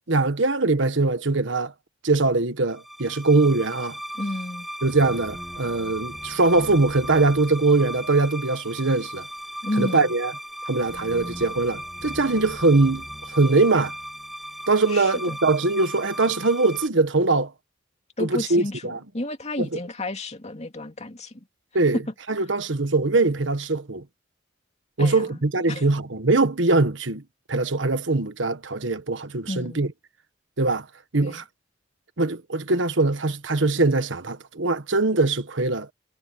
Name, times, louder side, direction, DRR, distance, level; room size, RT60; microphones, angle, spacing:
voice 1, 0.1-1.7 2.0-4.0 4.8-9.3 9.8-10.3 10.7-13.0 13.3-13.9 14.7-17.5 18.2-19.0 19.6-19.7 21.7-22.0 22.3-24.0 25.0-27.2 27.5-29.9 30.6-30.8 31.1-31.4 32.2-35.9, right 3 dB, 75° right, 1.4 m, -22 dB
sound 1, 2.7-16.9, equal, ahead, 2.0 m, -37 dB
voice 2, 4.1-4.7 9.6-10.1 14.9-15.3 18.2-21.4 21.9-22.0 25.0-25.4 25.7-25.8 29.5-29.8 31.2-31.4, left 1 dB, 35° left, 2.6 m, -31 dB
head